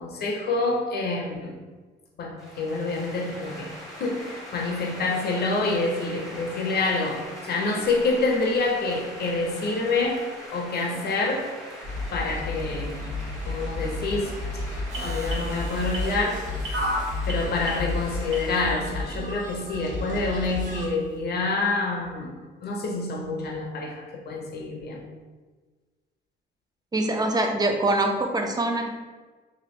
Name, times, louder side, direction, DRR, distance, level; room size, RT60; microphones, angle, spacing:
voice 1, 0.0-1.5 2.2-3.7 4.0-11.5 12.1-13.1 13.5-14.6 14.9-22.4 22.6-25.0, left 3 dB, 55° left, -1 dB, 0.8 m, -27 dB
sound 1, 2.4-18.6, equal, ahead, 1.2 m, -42 dB
sound 2, 11.8-20.9, left 2 dB, 40° right, 0.8 m, -32 dB
sound 3, 14.9-18.9 19.5-19.6, equal, 85° right, 0.8 m, -32 dB
voice 2, 26.9-28.9, right 2 dB, 20° right, 3 dB, 0.4 m, -24 dB
2.9 x 2.5 x 3.1 m, 1.4 s
cardioid pair, 90°, 20 cm